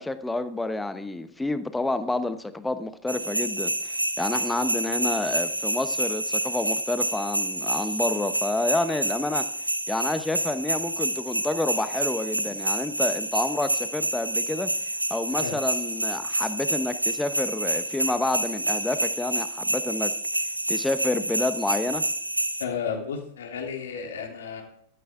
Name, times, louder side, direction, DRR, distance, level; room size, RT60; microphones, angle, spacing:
voice 1, 0.0-9.5 9.9-14.7 15.1-20.1 20.7-22.0, left 2 dB, 5° left, 11 dB, 1.0 m, -29 dB
sound 1, 3.1-22.6, right 1 dB, 85° right, 0.9 m, -28 dB
voice 2, 22.6-24.6, left 6 dB, 65° left, 1 dB, 3.2 m, -33 dB
14.0 x 13.0 x 3.6 m, 0.64 s
figure-of-eight pair, 90°, 0 cm